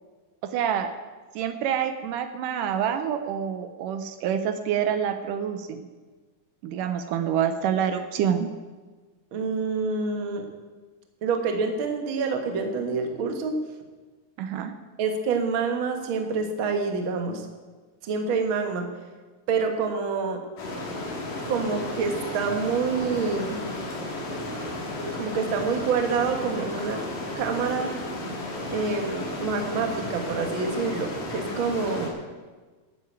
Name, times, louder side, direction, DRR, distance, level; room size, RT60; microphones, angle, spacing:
voice 1, 0.4-0.9 1.4-5.9 6.6-8.5 14.4-14.7, right 8 dB, 80° right, 9 dB, 2.3 m, -27 dB
voice 2, 9.3-10.5 11.2-13.6 15.0-17.4 18.0-18.9 19.5-20.4 21.5-23.6 25.2-27.0 27.4-27.9 28.7-32.1, right 5 dB, 50° right, 4 dB, 1.8 m, -27 dB
sound 1, 20.6-32.1, left 2 dB, 90° left, 4.3 m, -33 dB
12.5 x 8.0 x 8.8 m, 1.3 s
omnidirectional pair, 3.8 m